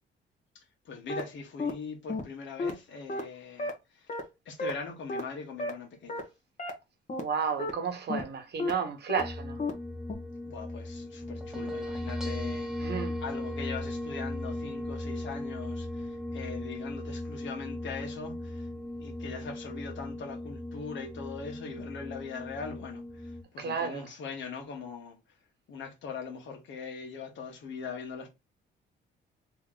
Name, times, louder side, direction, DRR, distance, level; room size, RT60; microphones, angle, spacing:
voice 1, 0.6-6.3 10.5-12.9 13.2-18.7 19.0-25.2 25.7-28.3, left 5 dB, 70° left, 1.6 m, -41 dB
sound 1, 1.1-1.2 1.6-1.7 2.1-2.2 2.6-2.7 3.1-3.2 3.6-3.7 4.1-4.2 4.6-4.7 5.1-5.2 5.6-5.7 6.1-6.2 6.6-6.7 7.1-7.2 7.6-7.7 8.1-8.2 8.6-8.7 9.1-9.2 9.6-9.7 10.1-10.2, left 2 dB, 35° left, 1.3 m, -31 dB
voice 2, 7.2-9.6 12.8-13.2 23.6-24.1, right 6 dB, 55° right, 1.2 m, -32 dB
sound 2, 9.2-23.4, left 1 dB, 5° right, 1.2 m, -37 dB
3.5 x 3.1 x 3.8 m
cardioid pair, 90°, 20 cm